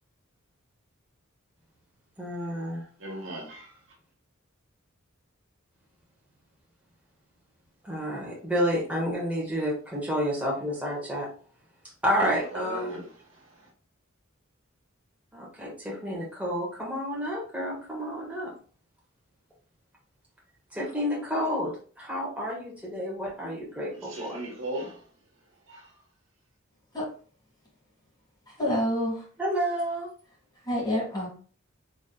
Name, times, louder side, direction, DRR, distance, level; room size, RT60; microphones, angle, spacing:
voice 1, 2.2-2.8 7.8-11.3 12.0-13.0 15.3-18.5 20.7-24.4 29.4-30.1, equal, 5° right, 1.4 m, -30 dB
voice 2, 3.0-3.8 12.5-13.0 23.9-25.0 25.7-25.9, right 1 dB, 70° right, 1.4 m, -37 dB
voice 3, 28.6-29.2 30.7-31.3, equal, 20° left, 1.9 m, -27 dB
4.1 x 3.5 x 2.3 m
head